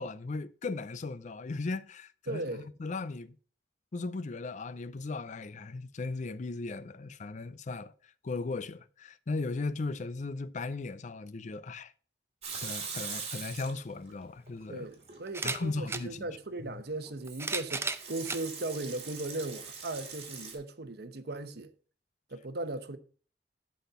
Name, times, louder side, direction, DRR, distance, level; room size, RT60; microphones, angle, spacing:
voice 1, 0.0-3.3 3.9-7.9 8.2-11.9 12.6-14.9 15.4-16.3 16.6-16.7, left 3 dB, 45° left, 0.5 m, -37 dB
voice 2, 2.3-2.7 14.7-21.7 22.3-23.0, right 2 dB, 65° right, 0.9 m, -37 dB
Water tap faucet / Sink (filling or washing) / Liquid, 12.4-14.1 14.5-15.2 17.2-20.6, right 5 dB, 35° right, 2.4 m, -41 dB
sound 1, 13.9-14.0 15.3-16.1 17.1-18.4 19.2-19.3 20.6-20.7, right 4 dB, 15° right, 0.6 m, -35 dB
11.5 x 4.3 x 5.5 m
head